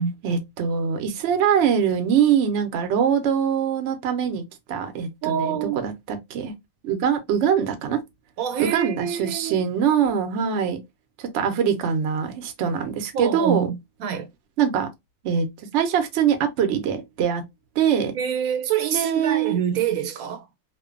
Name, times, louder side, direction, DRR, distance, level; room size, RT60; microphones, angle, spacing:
voice 1, 0.2-4.4 4.7-6.5 6.8-8.0 8.6-10.8 11.2-13.7 14.6-14.9 15.2-15.5 15.7-17.4 17.8-18.1 18.9-19.6, right 8 dB, 65° right, 0.8 m, -23 dB
voice 2, 5.2-5.8 8.4-9.6 13.1-14.3 18.1-20.4, right 8 dB, 80° right, 1.0 m, -26 dB
2.5 x 2.1 x 2.4 m
omnidirectional pair, 1.5 m